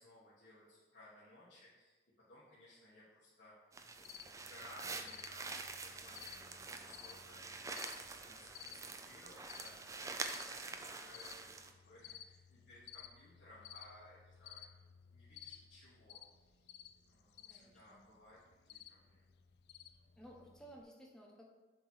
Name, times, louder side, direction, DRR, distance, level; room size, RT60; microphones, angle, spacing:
voice 1, 0.0-1.9 2.3-3.5 4.0-7.4 7.7-10.0 10.3-14.7 15.1-16.8 17.1-18.4 18.6-19.3, left 1 dB, 90° left, -9 dB, 1.4 m, -60 dB
sound 1, 3.7-11.7, right 3 dB, 20° right, 0.3 m, -46 dB
Cricket, 4.0-20.8, left 10 dB, 65° left, 0.4 m, -57 dB
voice 2, 17.5-18.0 20.2-21.5, right 1 dB, 5° left, -2 dB, 0.9 m, -56 dB
7.0 x 3.0 x 5.5 m, 1.2 s
head